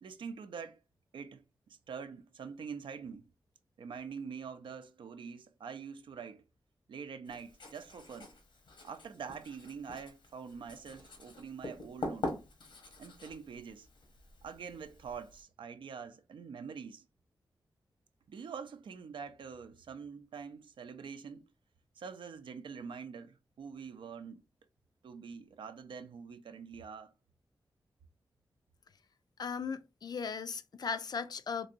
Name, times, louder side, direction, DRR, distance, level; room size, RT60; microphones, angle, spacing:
voice 1, 0.0-0.8 1.1-3.2 3.8-6.4 6.9-8.3 8.8-12.5 13.0-13.9 14.4-17.1 18.3-21.5 22.0-24.4 25.0-27.1, right 6 dB, 85° right, 0.5 m, -45 dB
Writing, 7.3-15.4, left 2 dB, 85° left, 1.0 m, -45 dB
voice 2, 29.4-31.7, left 6 dB, 55° left, 0.4 m, -37 dB
3.8 x 2.5 x 2.6 m
wide cardioid pair, 80°, 8 cm